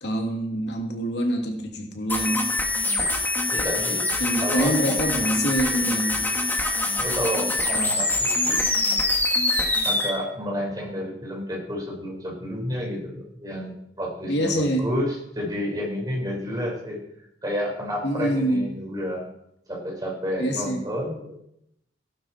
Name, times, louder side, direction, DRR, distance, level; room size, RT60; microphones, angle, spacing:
voice 1, 0.0-2.5 4.2-6.3 14.3-14.9 18.0-18.7 20.4-20.8, equal, 70° left, 2 dB, 2.5 m, -25 dB
sound 1, 2.1-10.1, left 2 dB, 10° left, 2.1 m, -24 dB
voice 2, 3.5-4.0 4.4-4.7 7.0-8.6 9.8-17.0 17.4-19.3 19.7-21.4, equal, 20° right, -1 dB, 5.0 m, -30 dB
16.5 x 12.0 x 4.4 m, 0.77 s
head